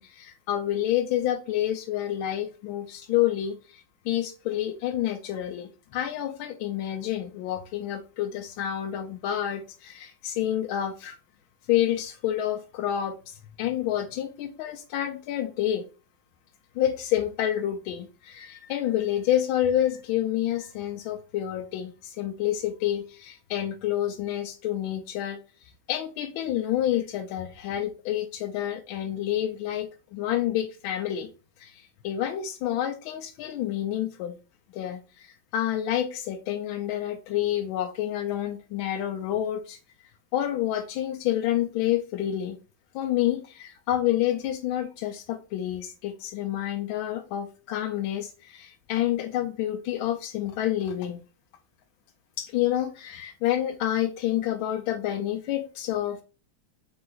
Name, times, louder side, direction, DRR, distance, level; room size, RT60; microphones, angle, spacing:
voice 1, 0.0-11.2 11.7-15.8 16.7-25.4 25.9-31.3 31.6-34.4 34.7-39.8 40.3-42.6 42.9-51.2 52.4-56.2, left 12 dB, 85° left, 5 dB, 1.4 m, -28 dB
4.2 x 3.0 x 3.8 m, 0.33 s
omnidirectional pair, 2.1 m